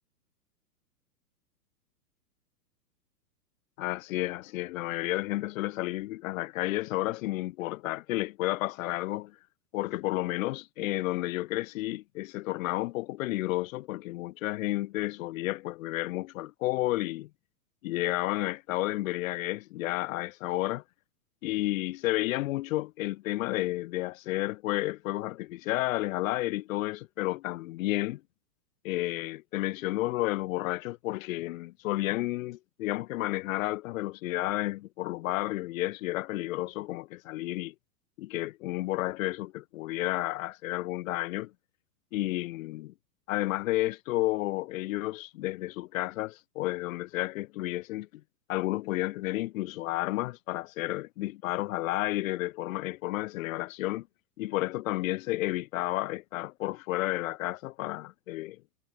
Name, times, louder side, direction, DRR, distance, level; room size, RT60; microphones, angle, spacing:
voice 1, 3.8-9.3 9.7-17.3 17.8-20.8 21.4-28.2 28.8-37.7 38.2-41.5 42.1-42.9 43.3-48.1 48.5-54.1 54.4-58.6, left 18 dB, 55° left, 5.9 m, -31 dB
hypercardioid pair, 135°, 49 cm